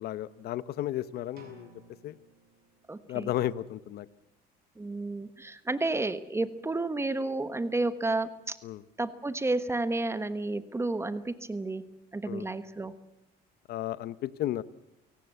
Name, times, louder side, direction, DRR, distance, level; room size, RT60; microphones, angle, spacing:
voice 1, 0.0-1.7 2.0-2.2 3.1-4.1 8.6-8.8 12.3-12.5 13.7-14.6, left 13 dB, 70° left, 17 dB, 0.9 m, -33 dB
sound 1, 1.3-3.2, right 4 dB, 65° right, 7.6 m, -56 dB
voice 2, 2.9-3.3 4.8-8.6 9.0-12.9, right 2 dB, 15° right, 13 dB, 1.2 m, -31 dB
23.5 x 18.0 x 8.3 m, 0.89 s
cardioid pair, 110°, 17 cm